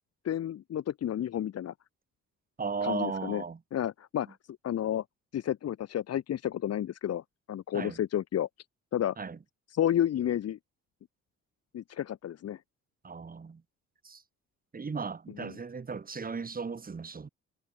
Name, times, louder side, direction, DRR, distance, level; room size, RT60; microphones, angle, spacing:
voice 1, 0.2-1.7 2.8-3.4 3.7-4.4 4.6-5.0 5.3-7.2 7.5-8.5 8.9-9.2 9.7-10.6 11.7-12.6 15.3-15.6, left 10 dB, 55° left, 1.0 m, -31 dB
voice 2, 2.6-3.6 7.7-8.0 9.2-9.4 13.0-13.6 14.0-14.2 14.7-17.3, right 5 dB, 30° right, 2.1 m, -36 dB
cardioid pair, 90°, 30 cm